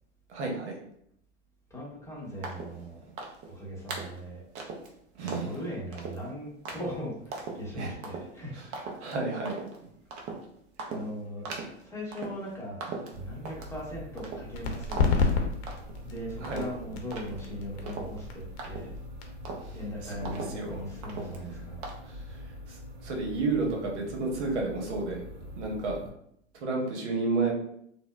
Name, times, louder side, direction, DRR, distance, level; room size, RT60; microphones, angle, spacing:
voice 1, 0.3-0.8 3.1-3.2 5.1-5.6 7.8-7.9 9.0-9.6 16.4-16.6 19.6-19.7 20.2-20.8 21.2-21.6 22.0-25.2 25.6-26.0 26.6-27.5, right 3 dB, 65° right, 1 dB, 1.0 m, -32 dB
voice 2, 1.7-3.0 3.5-4.4 5.2-8.6 10.9-11.5 11.8-12.9 13.1-15.0 16.0-19.0 19.7-21.8, equal, 10° left, -5 dB, 1.0 m, -39 dB
sound 1, 2.4-2.8 3.2-3.5 3.9-4.2 4.5-4.9 5.3-5.6 5.9-6.2 6.6-6.9 7.3-7.6 8.0-8.3 8.7-9.1 9.5-9.8 10.1-10.4 10.8-11.1 11.4-11.8 12.1-12.5 12.8-13.8 14.2-14.6 14.9-15.3 15.7-16.1 16.4-19.1 19.4-19.8 20.2-20.7 21.0-21.5 21.8-21.9, right 4 dB, 20° right, 0.3 m, -39 dB
sound 2, 13.1-26.1, left 1 dB, 40° right, 0.9 m, -44 dB
sound 3, 14.5-21.9, left 4 dB, 60° left, 0.8 m, -32 dB
4.0 x 2.2 x 2.3 m, 0.71 s
hypercardioid pair, 120°, 36 cm